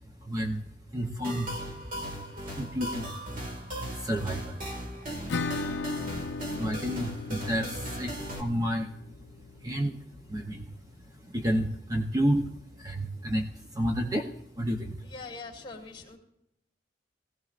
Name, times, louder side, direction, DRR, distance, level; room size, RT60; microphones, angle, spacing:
voice 1, 0.2-1.5 1.9-2.1 2.4-3.1 3.5-3.6 3.9-4.7 6.4-8.9 9.6-15.0, equal, 20° right, 2 dB, 0.7 m, -31 dB
sound 1, 1.2-8.4, right 1 dB, 50° right, 2.0 m, -37 dB
Acoustic guitar / Strum, 5.3-10.7, left 4 dB, 70° left, 0.6 m, -38 dB
voice 2, 15.0-16.2, left 3 dB, 25° left, 3 dB, 2.9 m, -42 dB
19.5 x 15.5 x 2.5 m, 0.80 s
head